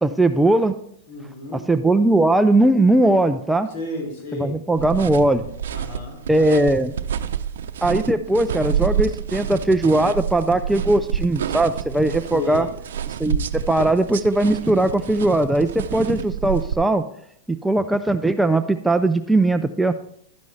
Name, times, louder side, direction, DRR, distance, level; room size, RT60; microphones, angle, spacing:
voice 1, 0.0-0.7 1.7-3.7 4.4-5.4 6.3-6.9 7.8-12.7 13.2-17.0 17.5-19.9, right 2 dB, 5° right, 9 dB, 0.4 m, -19 dB
voice 2, 1.1-1.7 3.7-4.6 5.7-6.2 12.3-12.7, left 2 dB, 60° left, -1 dB, 5.3 m, -32 dB
sound 1, 4.7-16.7, right 8 dB, 85° right, 0.6 m, -28 dB
12.0 x 9.4 x 3.3 m, 0.67 s
supercardioid pair, 135°, 0 cm